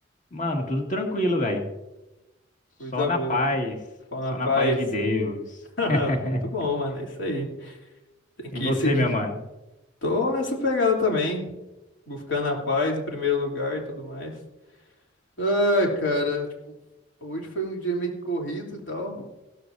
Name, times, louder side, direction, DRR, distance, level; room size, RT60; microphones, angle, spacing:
voice 1, 0.3-1.7 2.9-3.8 4.3-5.6 5.9-6.4 8.5-9.3, left 1 dB, 45° left, 2 dB, 2.0 m, -26 dB
voice 2, 2.8-3.5 4.1-4.8 5.8-7.8 8.4-9.0 10.0-11.4 12.1-14.4 15.4-16.7 17.2-19.3, left 2 dB, 80° left, -1 dB, 3.1 m, -26 dB
16.5 x 13.0 x 2.6 m, 1.0 s
head